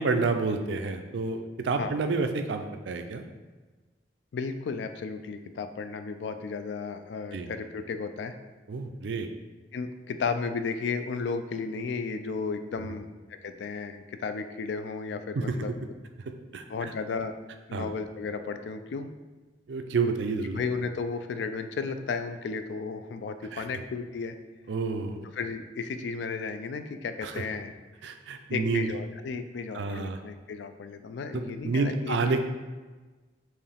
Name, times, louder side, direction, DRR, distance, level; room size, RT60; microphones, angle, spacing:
voice 1, 0.0-3.2 7.3-7.5 8.7-9.3 15.3-15.5 16.5-16.9 17.7-17.9 19.7-20.6 23.5-23.6 24.7-25.3 27.2-27.3 28.0-28.9 29.7-30.2 31.3-32.4, right 4 dB, 80° right, 7 dB, 0.4 m, -29 dB
voice 2, 4.3-8.3 9.7-15.7 16.7-17.3 17.7-19.1 20.5-24.4 25.3-27.7 28.5-32.4, left 4 dB, 80° left, 9 dB, 0.3 m, -34 dB
4.6 x 3.1 x 3.4 m, 1.3 s
head